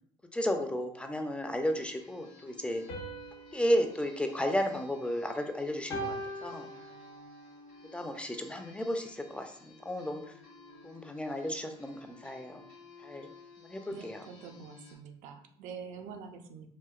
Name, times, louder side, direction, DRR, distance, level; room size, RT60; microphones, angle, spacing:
voice 1, 0.3-2.8 3.5-6.7 7.9-10.2 10.8-12.6 13.0-13.3 13.7-14.2, equal, 10° left, 5 dB, 0.3 m, -33 dB
sound 1, 1.6-15.0, left 3 dB, 60° left, 0.8 m, -55 dB
sound 2, 2.9-5.3 5.9-7.4, right 1 dB, 85° left, 0.8 m, -42 dB
voice 2, 13.9-16.7, right 6 dB, 60° right, 6 dB, 0.4 m, -46 dB
2.7 x 2.0 x 2.3 m, 0.64 s
hypercardioid pair, 60°, 14 cm